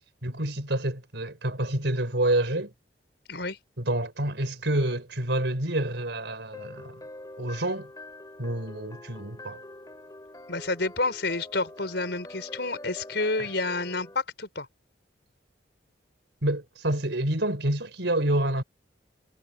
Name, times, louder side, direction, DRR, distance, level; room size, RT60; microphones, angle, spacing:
voice 1, 0.2-2.7 3.8-7.0 7.4-7.9 8.4-9.6 16.4-18.6, right 1 dB, 70° right, 4.0 m, -28 dB
sound 1, 6.5-14.2, left 1 dB, 20° left, 2.7 m, -45 dB
voice 2, 10.5-14.7, left 3 dB, 70° left, 4.9 m, -29 dB
head